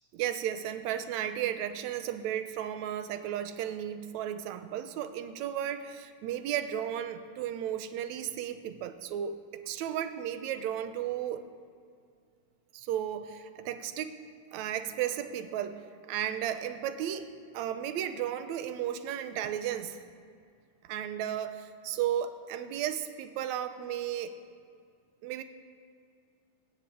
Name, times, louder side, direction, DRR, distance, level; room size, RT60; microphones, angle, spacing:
voice 1, 0.1-9.4 9.7-11.4 12.7-14.2 14.5-20.0 20.9-24.3 25.2-25.4, right 10 dB, 70° right, 9 dB, 1.8 m, -34 dB
20.5 x 7.4 x 8.7 m, 2.3 s
omnidirectional pair, 3.9 m